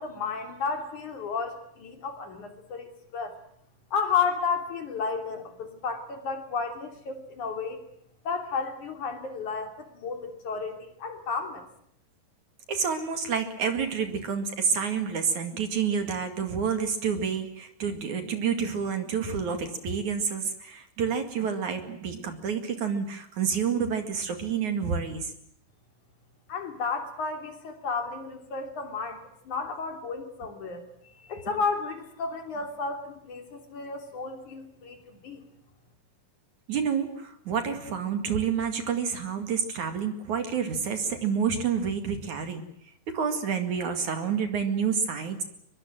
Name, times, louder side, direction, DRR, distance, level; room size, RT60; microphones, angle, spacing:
voice 1, 0.0-3.3 3.9-7.8 8.2-11.6 26.5-30.8 31.2-35.4, left 5 dB, 55° left, 5 dB, 4.3 m, -32 dB
voice 2, 12.7-25.3 36.7-42.6 43.1-45.4, right 6 dB, 55° right, 7 dB, 3.3 m, -29 dB
24.5 x 22.5 x 7.7 m, 0.72 s
omnidirectional pair, 4.4 m